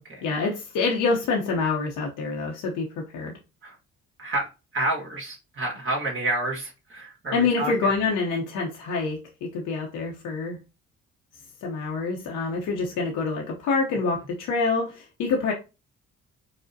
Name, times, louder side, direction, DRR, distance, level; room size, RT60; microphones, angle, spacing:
voice 1, 0.2-2.9 3.1-3.3 7.3-10.6 11.6-15.5, left 4 dB, 85° left, 0.8 m, -26 dB
voice 2, 4.7-7.9, right 2 dB, 40° right, 1.5 m, -29 dB
4.9 x 2.1 x 2.6 m
cardioid pair, 90°, 30 cm